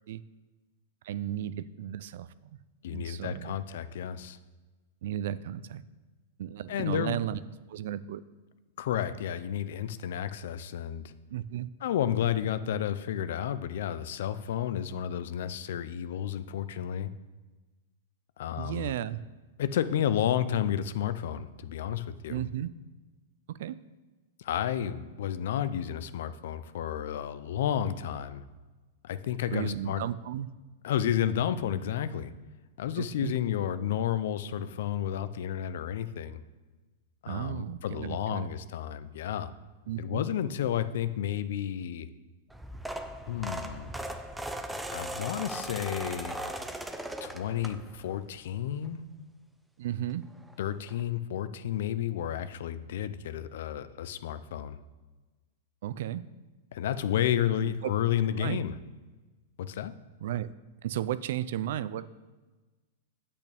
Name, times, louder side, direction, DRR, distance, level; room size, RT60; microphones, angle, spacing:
voice 1, 1.0-2.3 2.9-3.6 5.0-5.8 6.4-7.4 7.7-8.2 11.3-11.7 18.6-19.2 22.3-22.7 23.5-23.8 29.5-30.5 33.0-33.4 37.3-38.5 39.9-40.2 49.8-50.3 55.8-56.2 57.6-57.7 58.4-58.6 60.2-60.5 60.8-62.1, right 11 dB, 65° right, 17 dB, 0.4 m, -34 dB
voice 2, 2.8-4.4 6.7-7.2 8.8-11.1 11.8-17.1 18.4-18.9 19.6-22.4 24.4-28.4 29.0-30.0 30.8-32.3 32.8-36.4 37.2-39.5 40.0-42.1 43.3-43.9 44.9-46.4 47.2-49.0 50.6-54.8 56.7-58.7 59.6-59.9, left 10 dB, 65° left, 13 dB, 0.5 m, -31 dB
sound 1, 42.5-48.1 48.6-48.9 50.1-50.2 50.4-50.5 50.9-51.0, right 1 dB, 5° right, 0.5 m, -38 dB
8.5 x 8.4 x 3.5 m, 1.3 s
hypercardioid pair, 145°, 0 cm